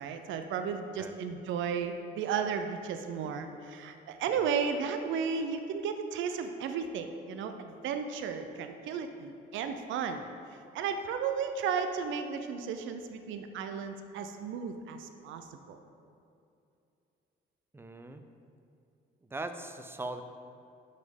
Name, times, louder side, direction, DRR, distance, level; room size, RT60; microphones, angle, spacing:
voice 1, 0.0-10.3 10.7-15.8, right 6 dB, 80° right, 7 dB, 0.5 m, -34 dB
voice 2, 17.7-18.2 19.2-20.2, right 2 dB, 10° right, 8 dB, 0.4 m, -40 dB
6.3 x 5.4 x 3.6 m, 2.6 s
cardioid pair, 90°, 20 cm